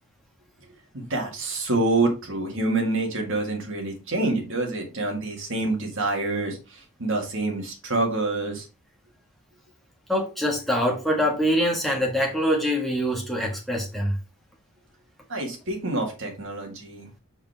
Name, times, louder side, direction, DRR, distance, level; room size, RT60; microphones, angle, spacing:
voice 1, 0.9-8.7 15.3-17.1, right 2 dB, 60° right, 1.9 m, -27 dB
voice 2, 10.1-14.2, equal, ahead, 1.6 m, -24 dB
5.4 x 5.1 x 3.4 m
head